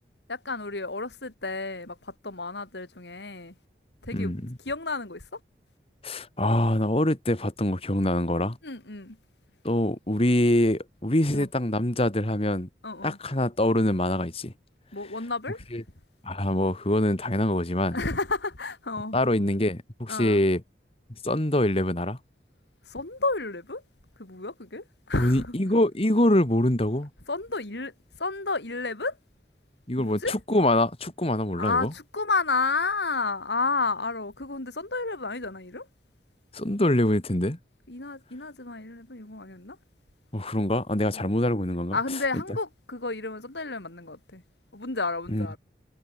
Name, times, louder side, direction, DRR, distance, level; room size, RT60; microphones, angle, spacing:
voice 1, 0.3-3.5 4.0-4.3 4.6-5.4 8.6-9.2 11.3-11.5 12.8-13.2 14.9-15.6 17.9-19.2 20.1-20.4 22.9-23.8 24.2-25.6 27.3-27.9 28.2-29.2 30.0-30.4 31.5-35.9 37.9-39.8 41.1-41.3 41.9-44.4 44.7-45.6, left 3 dB, 75° left, 2.7 m, -31 dB
voice 2, 4.1-4.6 6.0-8.6 9.6-12.7 13.0-14.5 15.7-15.8 16.2-18.0 19.1-20.6 21.2-22.2 25.2-27.1 29.9-31.9 36.5-37.6 40.3-42.0 45.3-45.5, left 1 dB, 35° left, 2.0 m, -24 dB
head